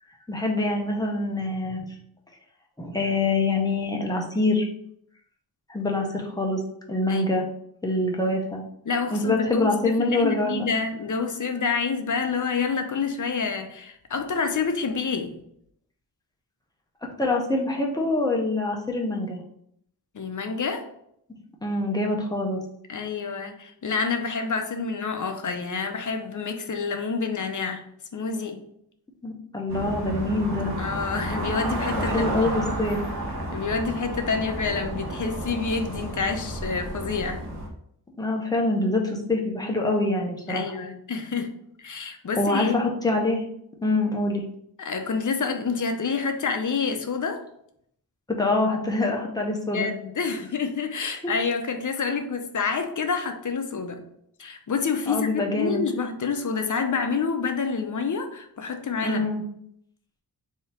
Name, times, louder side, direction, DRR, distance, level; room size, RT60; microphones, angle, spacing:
voice 1, 0.3-1.8 2.8-4.7 5.7-6.6 6.9-7.5 7.8-8.6 9.1-10.7 17.0-19.4 21.6-22.6 29.2-30.7 32.0-33.0 38.2-40.6 42.4-43.4 43.8-44.4 48.3-49.9 55.1-55.8 59.0-59.4, left 2 dB, 10° left, 0 dB, 0.7 m, -25 dB
voice 2, 8.9-15.3 20.1-20.9 22.9-27.8 28.1-28.6 30.8-32.3 33.5-37.4 40.5-41.5 41.8-42.8 44.8-47.4 49.7-54.0 54.4-59.3, left 5 dB, 50° left, 6 dB, 0.6 m, -28 dB
sound 1, 29.7-37.7, right 1 dB, 70° right, 1.0 m, -31 dB
3.5 x 2.8 x 4.3 m, 0.71 s
wide cardioid pair, 115°, 40 cm